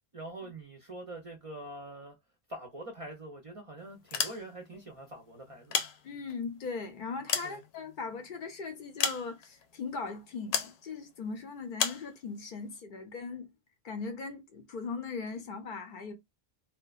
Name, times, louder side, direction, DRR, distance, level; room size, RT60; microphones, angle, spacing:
voice 1, 0.1-2.2 2.5-5.8 7.4-7.6, right 1 dB, 45° right, 0.5 m, -44 dB
sound 1, 4.0-4.8 5.5-6.5 7.0-8.2 9.0-9.6 10.5-10.8 11.8-12.1, left 7 dB, 85° left, 0.9 m, -32 dB
voice 2, 6.0-13.5 13.8-16.1, left 4 dB, 60° left, 0.6 m, -39 dB
2.8 x 2.2 x 2.3 m
omnidirectional pair, 1.1 m